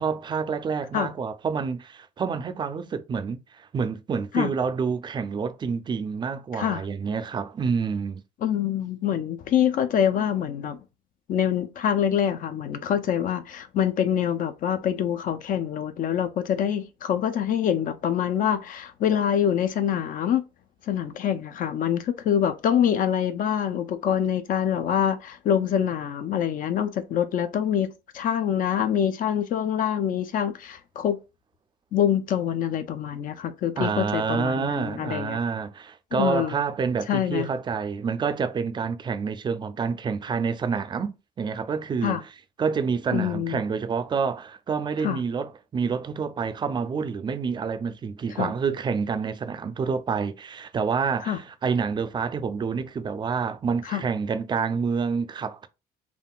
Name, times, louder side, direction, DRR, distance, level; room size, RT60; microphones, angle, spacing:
voice 1, 0.0-8.2 33.8-42.3 42.6-55.7, right 5 dB, 25° right, 0.4 m, -28 dB
voice 2, 8.4-10.8 11.3-20.4 20.9-31.2 31.9-35.4 36.1-36.6 37.1-37.5 42.0-42.2 43.1-43.6 45.0-45.2 48.4-48.5 51.2-51.4 53.9-54.0, left 9 dB, 55° left, 0.4 m, -25 dB
3.6 x 2.4 x 2.3 m
cardioid pair, 110°, 17 cm